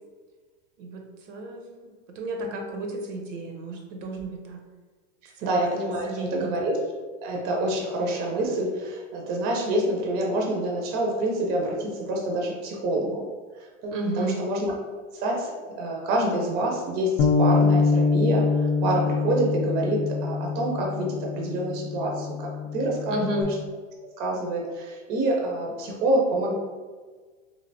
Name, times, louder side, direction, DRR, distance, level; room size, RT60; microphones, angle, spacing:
voice 1, 0.8-1.7 2.1-4.6 5.3-5.5 6.0-6.5 13.9-14.4 23.1-23.5, right 2 dB, 80° right, 3 dB, 0.8 m, -32 dB
voice 2, 5.4-6.8 7.2-13.2 13.6-14.7 15.1-15.5 15.8-23.5 24.2-26.5, right 1 dB, 30° right, -1 dB, 0.4 m, -27 dB
Bass guitar, 17.2-23.4, left 4 dB, 60° left, 0.5 m, -25 dB
3.2 x 2.4 x 2.6 m, 1.4 s
supercardioid pair, 140°, 37 cm